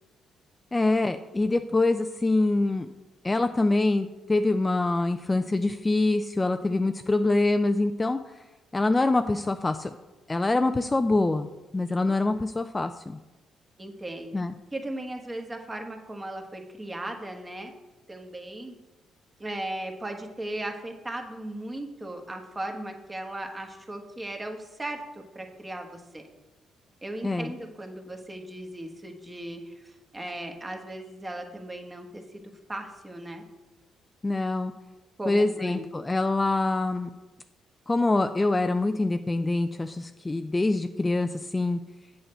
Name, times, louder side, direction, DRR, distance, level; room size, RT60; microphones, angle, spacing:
voice 1, 0.7-2.9 3.2-8.2 8.7-9.9 10.3-11.5 11.7-13.2 14.3-14.5 27.2-27.5 34.2-34.7 35.3-37.1 37.9-41.8, left 2 dB, 20° left, 8 dB, 0.3 m, -25 dB
voice 2, 13.8-14.4 14.7-17.7 18.1-18.7 19.4-25.0 25.3-26.2 27.0-32.4 32.7-33.4 35.2-35.8, right 1 dB, 20° right, 4 dB, 1.2 m, -37 dB
8.0 x 6.5 x 4.4 m, 1.1 s
cardioid pair, 90°, 0 cm